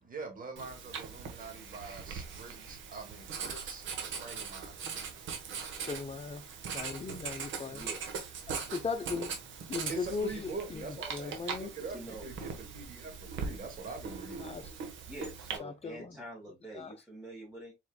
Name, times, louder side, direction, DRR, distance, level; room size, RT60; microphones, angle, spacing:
voice 1, 0.0-4.8 7.0-7.3 9.9-14.5, right 4 dB, 45° right, 1.9 m, -44 dB
Writing, 0.6-15.6, right 6 dB, 75° right, 1.2 m, -41 dB
voice 2, 5.9-6.4 6.7-7.8 8.5-9.3 9.7-11.7 14.4-14.7 15.6-16.2 16.7-16.9, left 4 dB, 30° left, 0.8 m, -38 dB
voice 3, 7.6-8.1 11.9-12.2 15.1-17.7, right 1 dB, 10° right, 2.3 m, -46 dB
4.5 x 4.3 x 2.2 m
cardioid pair, 90°, 20 cm